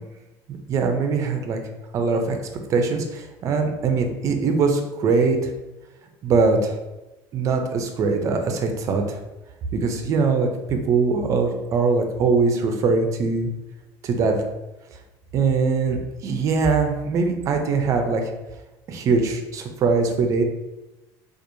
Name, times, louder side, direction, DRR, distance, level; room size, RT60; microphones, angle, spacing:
voice 1, 0.7-1.6 1.9-2.4 2.7-5.5 6.2-6.7 7.3-9.2 9.7-13.5 14.0-14.4 15.3-18.2 18.9-20.4, right 4 dB, 35° right, 4 dB, 0.4 m, -22 dB
4.4 x 2.4 x 2.6 m, 1.0 s
cardioid pair, 165°, 9 cm